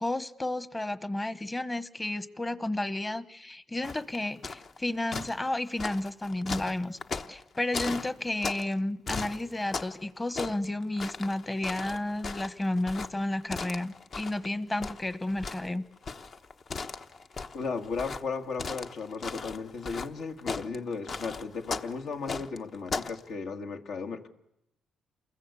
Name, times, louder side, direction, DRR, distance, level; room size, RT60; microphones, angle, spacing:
voice 1, 0.0-7.0 7.3-15.8, left 1 dB, 20° left, 1.2 m, -32 dB
sound 1, 3.8-4.8 5.1-8.7 9.1-10.0 10.3-14.5 14.8-23.2, left 4 dB, 45° left, 1.1 m, -37 dB
voice 2, 17.5-24.3, left 4 dB, 70° left, 2.0 m, -35 dB
28.5 x 22.0 x 8.4 m
cardioid pair, 90°, 0 cm